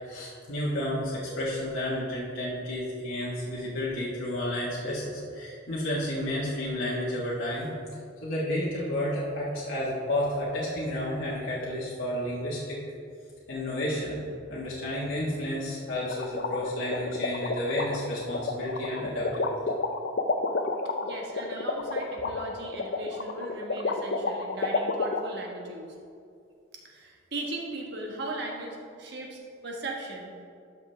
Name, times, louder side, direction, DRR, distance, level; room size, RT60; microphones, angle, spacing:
voice 1, 0.1-7.7 8.2-12.8 13.5-14.2 14.5-19.6, left 1 dB, 80° left, -7 dB, 1.5 m, -31 dB
sound 1, 16.1-25.2, left 3 dB, 55° left, 0.5 m, -29 dB
voice 2, 21.0-25.9 26.8-30.3, right 2 dB, 60° right, -1 dB, 1.3 m, -38 dB
11.5 x 6.0 x 3.4 m, 2.4 s
head